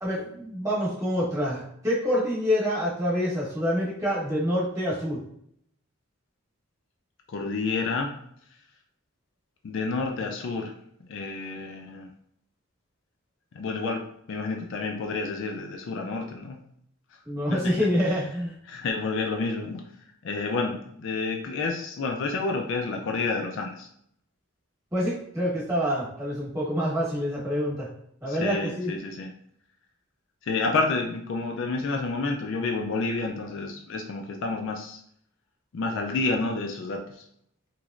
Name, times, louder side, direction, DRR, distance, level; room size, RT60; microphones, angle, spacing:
voice 1, 0.0-5.2 17.2-18.5 24.9-27.9 28.2-28.9, equal, 15° right, -7 dB, 1.1 m, -27 dB
voice 2, 7.3-8.1 9.6-10.7 11.1-12.1 13.5-14.0 14.3-16.6 18.7-19.8 20.2-23.9 28.2-29.3 30.5-35.0 35.7-37.0, left 3 dB, 55° left, 2 dB, 0.4 m, -29 dB
3.0 x 3.0 x 2.4 m, 0.69 s
head